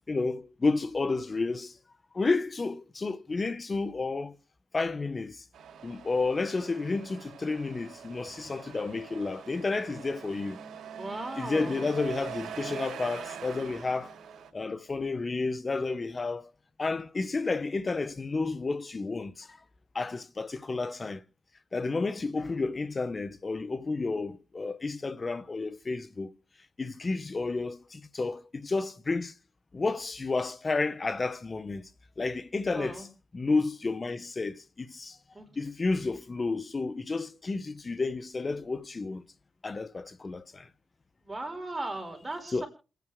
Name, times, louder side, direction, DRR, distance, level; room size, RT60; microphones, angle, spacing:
voice 1, 0.1-1.8 2.1-4.4 4.7-5.4 5.8-10.6 11.4-14.1 14.5-16.5 16.8-19.6 19.9-21.2 21.7-26.3 26.8-29.3 29.7-31.9 32.2-33.1 33.3-35.2 35.6-39.3 39.6-40.7 42.5-42.6, left 3 dB, 35° left, 0.9 m, -31 dB
Truck, 5.5-14.5, right 8 dB, 85° right, 2.1 m, -43 dB
voice 2, 10.9-11.9 32.7-33.1 35.3-35.5 41.2-42.7, right 2 dB, 25° right, 5.2 m, -37 dB
27.5 x 9.3 x 3.6 m
cardioid pair, 75°, 0 cm